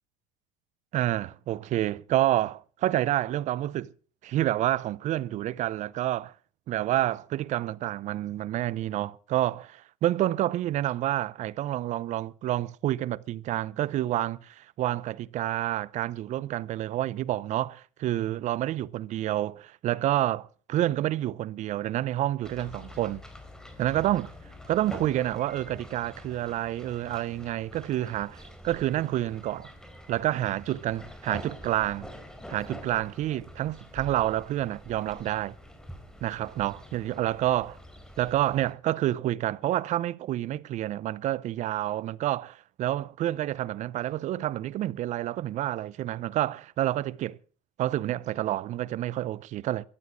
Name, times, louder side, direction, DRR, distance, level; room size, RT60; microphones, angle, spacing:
voice 1, 0.9-3.9 4.2-6.3 6.7-23.2 23.8-24.3 24.7-29.7 30.1-32.1 32.5-35.5 36.2-37.8 38.2-47.4 47.8-49.8, right 14 dB, 50° right, 0.7 m, -28 dB
sound 1, 22.4-38.7, left 1 dB, 5° left, 4.0 m, -46 dB
14.0 x 12.0 x 6.4 m
supercardioid pair, 85°, 15 cm